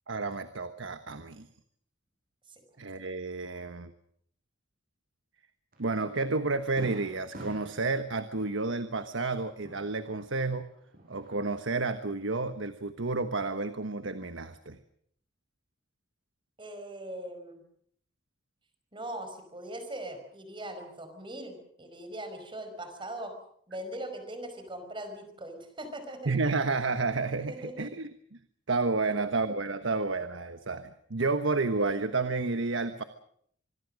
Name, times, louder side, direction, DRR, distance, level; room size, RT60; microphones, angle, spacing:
voice 1, 0.1-1.5 2.8-3.9 5.8-10.7 11.1-14.8 26.2-28.4 28.7-33.0, right 3 dB, 90° right, 10 dB, 1.3 m, -31 dB
Fireworks, 5.7-5.9 6.3-6.4 6.8-10.5 10.8-11.7, right 1 dB, 50° right, 7.5 m, -47 dB
voice 2, 16.6-17.6 18.9-23.3 23.7-26.3 27.5-27.9 29.0-29.2, right 1 dB, 25° right, 8 dB, 5.0 m, -40 dB
25.5 x 22.0 x 6.5 m, 0.65 s
head